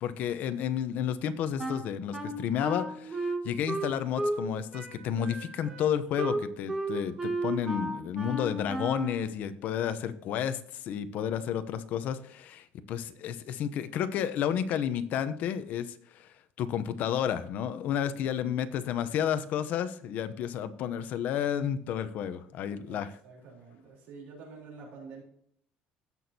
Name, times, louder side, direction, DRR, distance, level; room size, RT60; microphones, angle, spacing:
voice 1, 0.0-16.3 16.6-23.1, left 9 dB, 55° left, 11 dB, 0.7 m, -31 dB
Wind instrument woodwind instrument, 1.6-4.5 4.7-9.2, right 1 dB, 15° right, 1.3 m, -34 dB
voice 2, 22.9-25.2, right 4 dB, 65° right, -4 dB, 3.7 m, -48 dB
16.0 x 6.1 x 2.8 m, 0.66 s
cardioid pair, 165°, 3 cm